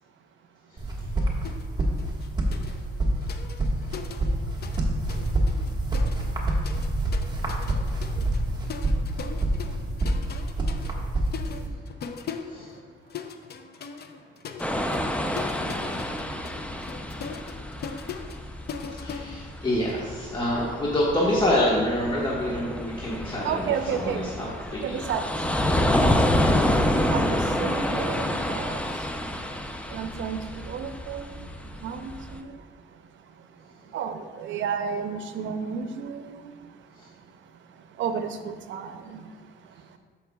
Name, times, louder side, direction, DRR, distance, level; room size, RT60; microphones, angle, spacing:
sound 1, 0.8-11.7, right 1 dB, 20° right, 1.5 m, -27 dB
sound 2, 1.4-1.7 2.0-4.8 5.1-20.0, left 6 dB, 55° left, 0.6 m, -40 dB
sound 3, 14.6-32.4, left 1 dB, 5° left, 0.6 m, -28 dB
voice 1, 19.0-25.0 27.9-28.2 37.0-37.1, left 1 dB, 25° left, -6 dB, 1.5 m, -27 dB
voice 2, 23.4-24.2 24.8-25.3 26.0-26.3 27.1-29.1 29.9-31.5 31.8-32.6 32.9-33.0 33.4-33.5 33.9-36.5 37.9-39.4 39.7-40.0, right 7 dB, 70° right, 8 dB, 0.6 m, -32 dB
13.5 x 5.6 x 2.3 m, 1.6 s
cardioid pair, 90°, 20 cm